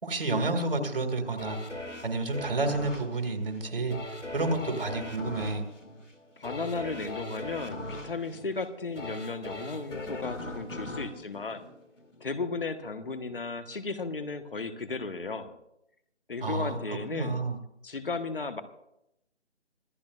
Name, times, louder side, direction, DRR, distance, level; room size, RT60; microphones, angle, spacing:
voice 1, 0.0-1.6 2.0-5.7 16.4-17.6, right 2 dB, 50° right, 6 dB, 2.4 m, -30 dB
sound 1, 1.4-12.3 12.8-12.9, left 1 dB, 85° left, 2.4 m, -40 dB
voice 2, 6.4-11.6 12.2-15.6 16.3-17.4 17.8-18.6, left 4 dB, 50° left, 9 dB, 1.4 m, -35 dB
25.5 x 16.5 x 2.6 m, 0.81 s
figure-of-eight pair, 160°, 36 cm